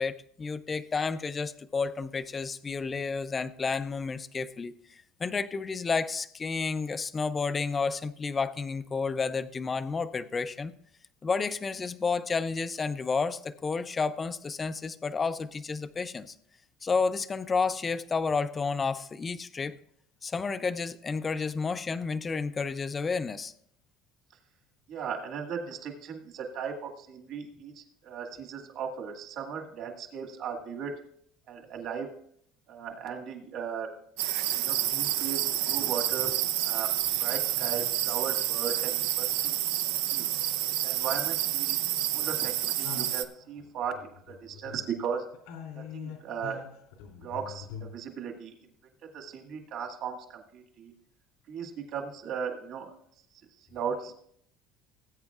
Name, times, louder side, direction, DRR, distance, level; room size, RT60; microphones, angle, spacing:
voice 1, 0.0-4.7 5.2-10.7 11.2-16.3 16.8-19.8 20.2-23.5, left 4 dB, 20° left, 13 dB, 0.4 m, -31 dB
voice 2, 24.9-30.9 31.5-32.1 32.7-33.9 34.5-36.3 36.6-36.9 37.2-39.6 40.1-40.4 40.8-41.8 42.1-45.2 45.7-46.6 47.2-48.5 49.1-50.9 51.5-52.9 53.7-54.2, right 6 dB, 50° right, 2 dB, 1.8 m, -37 dB
sound 1, 34.2-43.2, right 13 dB, 90° right, 0.7 m, -29 dB
sound 2, 42.8-45.0 45.3-48.0, left 7 dB, 90° left, 2.7 m, -44 dB
19.0 x 8.8 x 2.4 m, 0.66 s
cardioid pair, 160°, 0 cm